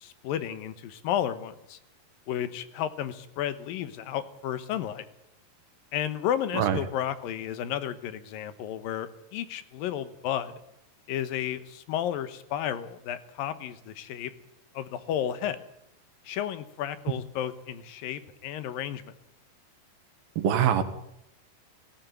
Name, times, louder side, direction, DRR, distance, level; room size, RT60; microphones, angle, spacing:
voice 1, 0.0-1.8 2.3-5.1 5.9-10.5 11.1-14.3 14.7-15.6 16.3-19.1, left 10 dB, 80° left, 12 dB, 2.8 m, -32 dB
voice 2, 20.4-20.8, right 9 dB, 85° right, 8 dB, 3.4 m, -23 dB
17.5 x 16.5 x 9.2 m, 0.80 s
omnidirectional pair, 4.1 m